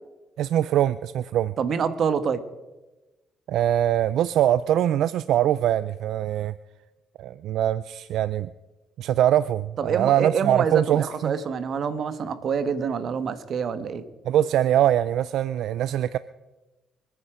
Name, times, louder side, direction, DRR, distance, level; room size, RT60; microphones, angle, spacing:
voice 1, 0.4-1.5 3.5-6.5 7.2-8.5 9.0-11.3 14.3-16.2, right 11 dB, 80° right, 16 dB, 0.4 m, -23 dB
voice 2, 1.6-2.4 9.8-14.0, right 6 dB, 60° right, 11 dB, 1.5 m, -26 dB
26.5 x 9.6 x 5.1 m, 1.1 s
cardioid pair, 90°, 0 cm